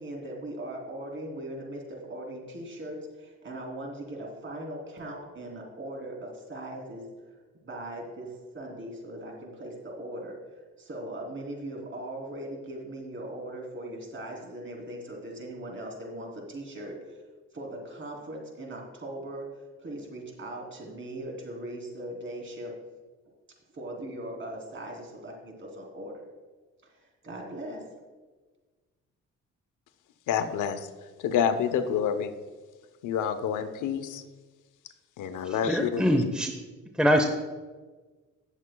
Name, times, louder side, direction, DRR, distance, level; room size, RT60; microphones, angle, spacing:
voice 1, 0.0-7.1 7.6-17.2 17.5-22.8 23.7-26.2 26.8-27.9, right 1 dB, 40° right, 0 dB, 3.2 m, -39 dB
voice 2, 30.3-30.9 31.2-32.3 33.0-34.2 35.2-36.0, left 8 dB, 85° left, 10 dB, 0.8 m, -28 dB
voice 3, 35.7-36.5 37.0-37.2, equal, 5° right, 4 dB, 0.8 m, -23 dB
18.0 x 7.2 x 2.3 m, 1.3 s
cardioid pair, 90°, 30 cm